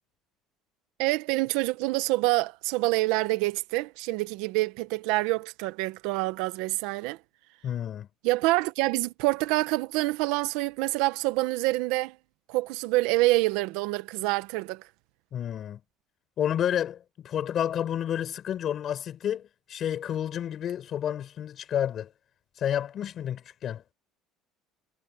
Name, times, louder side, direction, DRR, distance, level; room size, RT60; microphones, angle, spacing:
voice 1, 1.0-7.2 8.2-12.2 12.5-14.8, right 20 dB, 75° right, 0.9 m, -26 dB
voice 2, 7.6-8.1 15.3-15.8 16.4-22.1 22.6-23.8, left 10 dB, 35° left, 4.5 m, -30 dB
cardioid pair, 175°, 0 cm